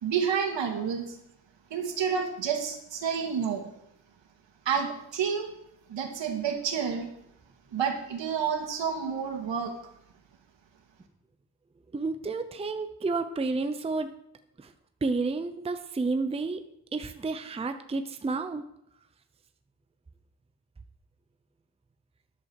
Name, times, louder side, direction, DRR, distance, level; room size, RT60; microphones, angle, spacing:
voice 1, 0.0-1.2 1.7-3.7 4.7-5.5 5.9-7.1 7.7-9.7, right 7 dB, 80° right, 3 dB, 2.4 m, -29 dB
voice 2, 11.9-14.1 14.6-14.7 15.0-16.6 16.9-18.6, right 3 dB, 15° right, 8 dB, 0.6 m, -30 dB
13.5 x 11.0 x 4.7 m, 0.75 s
wide cardioid pair, 170°, 43 cm